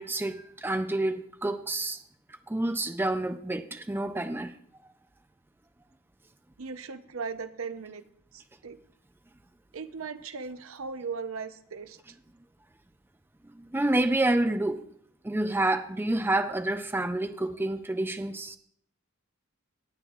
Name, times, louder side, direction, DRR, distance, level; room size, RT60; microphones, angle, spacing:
voice 1, 0.0-2.0 2.5-4.5 13.5-14.8 15.2-18.6, right 2 dB, 10° right, 0.4 m, -28 dB
voice 2, 6.6-8.0 8.3-8.8 9.7-12.0, right 5 dB, 75° right, 0.7 m, -38 dB
18.5 x 8.9 x 2.4 m
head